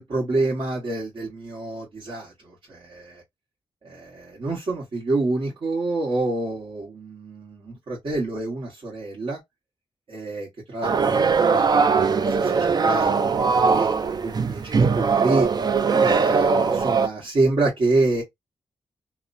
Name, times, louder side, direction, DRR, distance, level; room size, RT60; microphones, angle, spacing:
voice 1, 0.0-3.2 3.8-9.4 10.1-15.5 16.0-18.2, right 2 dB, 60° right, 1.2 m, -27 dB
sound 1, 10.8-17.1, right 5 dB, 45° right, 0.4 m, -20 dB
3.0 x 2.1 x 2.5 m
cardioid pair, 55°, 10 cm